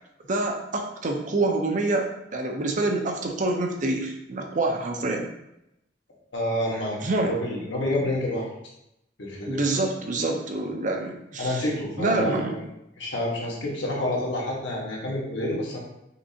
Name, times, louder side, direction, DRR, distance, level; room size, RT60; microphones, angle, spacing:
voice 1, 0.3-5.3 7.0-7.3 9.5-11.6 12.0-12.6, right 2 dB, 45° right, 3 dB, 0.6 m, -26 dB
voice 2, 6.3-8.5 9.2-9.6 11.4-12.6 13.0-15.8, left 1 dB, 80° left, -3 dB, 1.4 m, -28 dB
5.7 x 3.3 x 2.8 m, 0.84 s
head